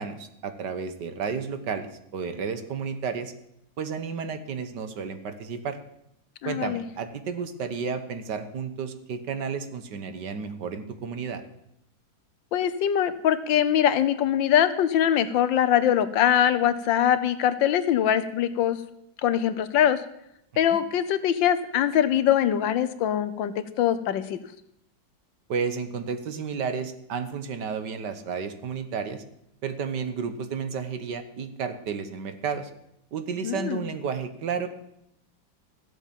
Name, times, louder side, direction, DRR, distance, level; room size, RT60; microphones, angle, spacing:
voice 1, 0.0-1.9 2.1-3.3 3.8-5.8 6.4-11.4 25.5-29.2 29.6-32.7 33.1-34.7, right 6 dB, 65° right, 10 dB, 1.7 m, -32 dB
voice 2, 6.4-6.8 12.5-18.8 19.2-20.0 20.6-24.4 33.4-33.8, left 10 dB, 80° left, 13 dB, 1.6 m, -23 dB
14.0 x 8.2 x 7.4 m, 0.77 s
omnidirectional pair, 2.0 m